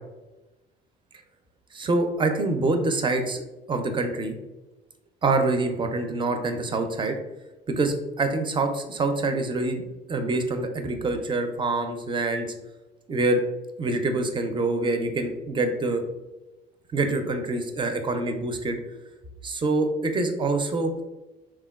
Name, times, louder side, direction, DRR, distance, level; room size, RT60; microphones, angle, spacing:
voice 1, 1.7-3.4 3.7-4.4 5.2-7.2 7.7-12.5 13.1-13.4 13.8-16.0 16.9-18.8 19.4-20.9, right 2 dB, 25° right, 6 dB, 0.4 m, -25 dB
3.2 x 2.2 x 2.3 m, 1.1 s
supercardioid pair, 75°, 21 cm